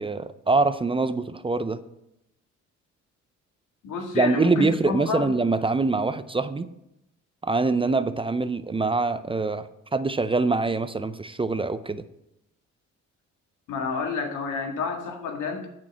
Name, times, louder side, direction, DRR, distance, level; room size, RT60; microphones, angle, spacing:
voice 1, 0.0-1.8 4.1-6.7 7.4-12.0, right 3 dB, 20° right, 12 dB, 0.5 m, -24 dB
voice 2, 3.8-5.3 13.7-15.7, left 4 dB, 85° left, 3 dB, 1.9 m, -29 dB
8.6 x 6.2 x 7.2 m, 0.84 s
cardioid pair, 90°, 30 cm